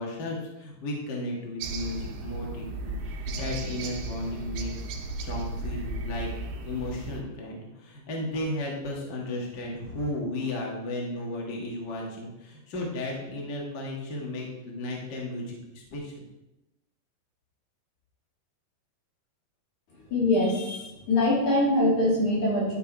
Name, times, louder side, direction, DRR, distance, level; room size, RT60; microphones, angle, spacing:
voice 1, 0.0-4.7 5.2-6.3 6.6-16.3, left 1 dB, 65° left, -2 dB, 1.0 m, -34 dB
sound 1, 1.6-7.2, right 2 dB, 85° right, 3.3 m, -35 dB
voice 2, 20.1-22.8, left 1 dB, 45° left, -6 dB, 4.4 m, -23 dB
11.5 x 6.0 x 4.6 m, 0.92 s
omnidirectional pair, 5.0 m